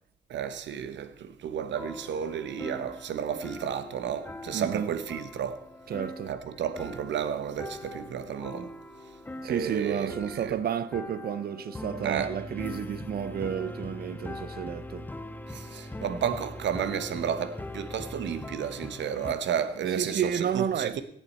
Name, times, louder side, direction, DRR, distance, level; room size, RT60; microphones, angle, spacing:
voice 1, 0.3-5.6 6.3-8.7 9.4-10.6 12.0-12.3 15.5-21.0, right 8 dB, 70° right, 1.0 m, -32 dB
sound 1, 1.6-19.3, left 1 dB, 10° left, 0.6 m, -42 dB
voice 2, 4.5-4.9 5.9-6.3 9.4-15.1 20.0-21.0, right 8 dB, 50° right, 0.6 m, -31 dB
17.0 x 7.8 x 4.3 m
cardioid pair, 135°, 20 cm